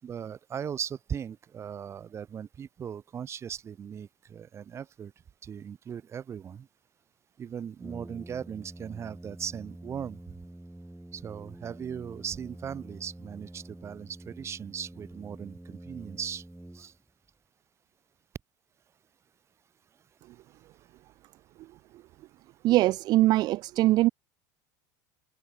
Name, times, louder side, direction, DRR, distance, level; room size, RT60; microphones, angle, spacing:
voice 1, 0.0-5.1 5.4-6.7 7.4-10.4 11.1-16.4 16.7-16.9, right 8 dB, 30° right, 4.8 m, -38 dB
Brass instrument, 7.8-17.3, right 1 dB, 5° right, 4.6 m, -47 dB
voice 2, 22.6-24.1, right 16 dB, 45° right, 0.8 m, -22 dB
supercardioid pair, 130°, 10 cm